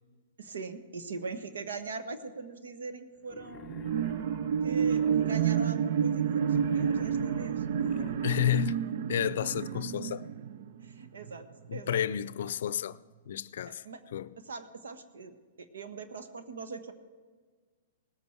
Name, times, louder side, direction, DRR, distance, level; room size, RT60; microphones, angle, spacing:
voice 1, 0.4-3.7 4.6-8.1 10.8-12.0 13.7-14.0 14.4-16.9, right 4 dB, 85° right, 1.3 m, -42 dB
Wild animals, 3.2-5.7 6.2-8.7, left 5 dB, 15° left, 1.3 m, -49 dB
sound 1, 3.7-11.4 11.9-12.0, right 8 dB, 60° right, 0.6 m, -29 dB
voice 2, 8.2-8.8 9.1-10.3 11.7-13.0 13.3-13.8 14.1-14.3, left 11 dB, 70° left, 0.5 m, -31 dB
19.0 x 8.8 x 4.5 m
hypercardioid pair, 140°, 0 cm